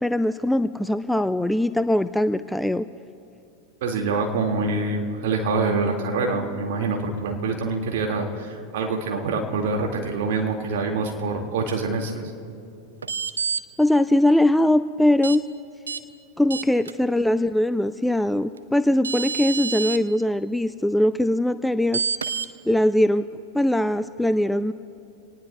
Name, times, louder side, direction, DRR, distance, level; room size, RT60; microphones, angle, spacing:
voice 1, 0.0-2.9 13.8-15.4 16.4-22.0 22.7-23.3 23.5-24.7, left 1 dB, 5° left, 12 dB, 0.3 m, -21 dB
voice 2, 3.8-12.2, right 3 dB, 55° right, 1 dB, 2.1 m, -25 dB
sound 1, 13.0-13.6 15.2-15.4 15.9-16.0 16.5-16.9 18.6-18.7 19.0-20.0 21.9-22.5, right 6 dB, 70° right, 0.5 m, -27 dB
26.5 x 19.0 x 2.3 m, 2.5 s
figure-of-eight pair, 90°, 0 cm